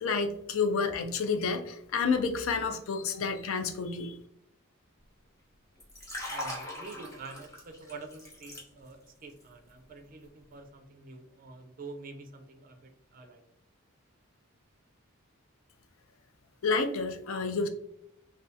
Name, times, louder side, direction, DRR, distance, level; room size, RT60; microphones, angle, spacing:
voice 1, 0.0-4.1 16.6-17.7, left 4 dB, 65° left, 6 dB, 0.4 m, -29 dB
Liquid, 5.8-9.1 9.4-9.7, left 1 dB, 15° left, 0.7 m, -40 dB
voice 2, 6.3-13.4, right 3 dB, 40° right, 5 dB, 0.4 m, -47 dB
3.4 x 2.3 x 2.6 m, 0.75 s
head